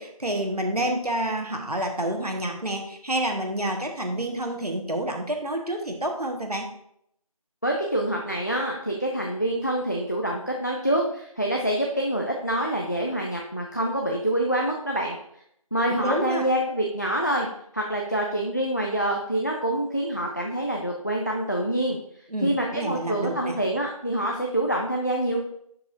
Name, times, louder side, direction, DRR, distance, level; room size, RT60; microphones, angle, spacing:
voice 1, 0.0-6.7 15.9-16.4 22.3-23.6, right 1 dB, 90° right, 3 dB, 1.5 m, -28 dB
voice 2, 7.6-15.2 15.7-17.5 17.7-22.0 22.4-25.4, right 1 dB, 30° left, 0 dB, 0.5 m, -26 dB
11.0 x 4.7 x 2.6 m, 0.72 s
figure-of-eight pair, 170°, 19 cm